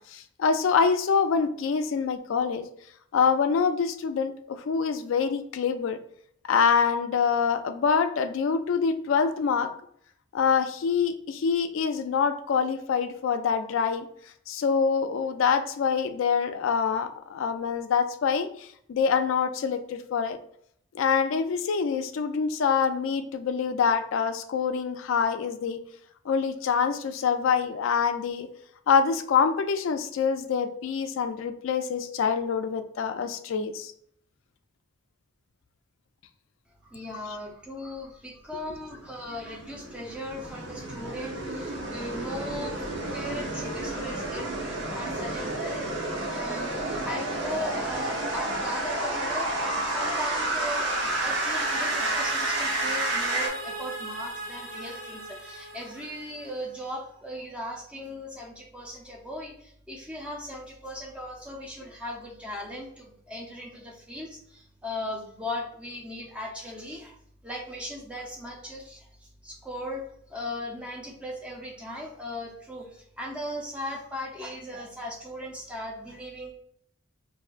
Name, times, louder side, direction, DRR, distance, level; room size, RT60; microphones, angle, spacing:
voice 1, 0.1-2.6 3.1-6.0 6.5-9.7 10.3-14.1 14.5-20.4 20.9-25.8 26.3-28.5 28.9-33.9, left 6 dB, 80° left, 8 dB, 0.3 m, -25 dB
voice 2, 36.7-49.6 49.9-67.2 67.4-76.5, left 1 dB, 5° right, -1 dB, 0.6 m, -38 dB
sound 1, 38.9-53.5, right 1 dB, 70° right, 0.7 m, -30 dB
sound 2, 49.6-56.7, right 2 dB, 45° right, 1.1 m, -39 dB
4.3 x 2.6 x 2.4 m, 0.67 s
head